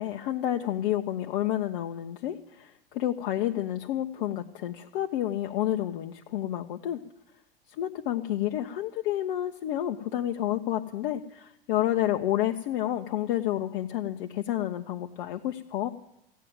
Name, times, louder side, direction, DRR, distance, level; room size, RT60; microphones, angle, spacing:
voice 1, 0.0-7.0 7.8-15.9, left 12 dB, 55° left, 4 dB, 0.9 m, -30 dB
15.0 x 9.3 x 9.2 m, 0.80 s
hypercardioid pair, 85°, 30 cm